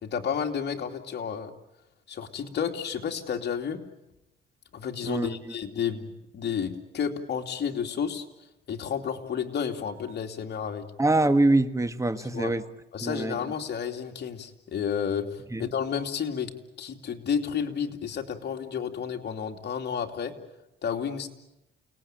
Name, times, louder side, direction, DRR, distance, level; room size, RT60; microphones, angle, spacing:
voice 1, 0.0-1.5 2.1-3.8 4.7-8.2 8.7-10.9 12.3-12.5 12.9-16.5 16.8-20.3 20.8-21.3, left 7 dB, 60° left, 3 dB, 2.9 m, -31 dB
voice 2, 5.1-5.5 11.0-12.6 13.0-13.4 15.5-15.7, right 2 dB, 15° right, 11 dB, 1.5 m, -24 dB
29.5 x 19.0 x 9.1 m, 0.90 s
cardioid pair, 90°, 20 cm